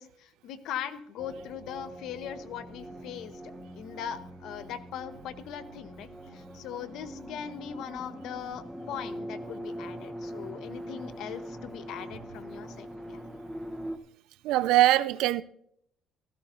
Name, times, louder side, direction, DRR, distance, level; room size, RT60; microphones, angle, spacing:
voice 1, 0.0-3.3 3.7-13.2, left 9 dB, 60° left, 0.9 m, -40 dB
sound 1, 1.2-14.0, equal, 5° right, 0.8 m, -42 dB
voice 2, 14.4-15.4, right 15 dB, 75° right, 0.4 m, -22 dB
16.5 x 14.5 x 2.7 m
cardioid pair, 175°, 0 cm